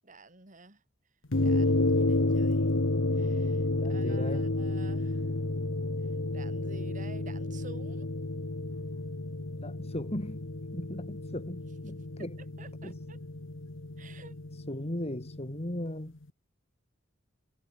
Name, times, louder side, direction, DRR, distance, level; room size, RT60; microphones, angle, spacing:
voice 1, 0.0-0.8 1.4-2.7 3.2-3.6 3.9-5.2 6.3-8.1 12.4-13.2 14.0-14.3, right 3 dB, 40° right, 3.1 m, -51 dB
sound 1, 1.3-15.9, left 2 dB, 70° left, 1.5 m, -31 dB
voice 2, 3.7-4.5 9.6-12.4 12.8-13.0 14.5-16.2, left 1 dB, 30° left, 2.6 m, -38 dB
head